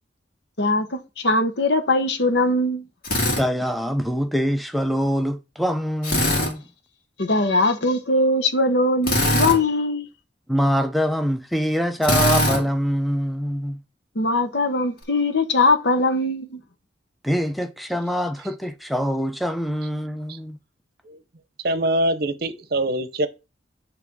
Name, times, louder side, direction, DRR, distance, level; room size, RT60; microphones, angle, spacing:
voice 1, 0.6-2.8 7.2-10.1 14.1-16.6, left 2 dB, 65° left, 1.0 m, -21 dB
Drill, 3.0-3.4 6.0-6.5 9.0-9.6 12.0-12.6, left 1 dB, 50° left, 2.3 m, -20 dB
voice 2, 3.3-6.6 10.5-13.8 17.2-20.6, equal, ahead, 0.5 m, -24 dB
voice 3, 21.6-23.3, right 1 dB, 55° right, 0.8 m, -23 dB
8.2 x 3.4 x 6.0 m
head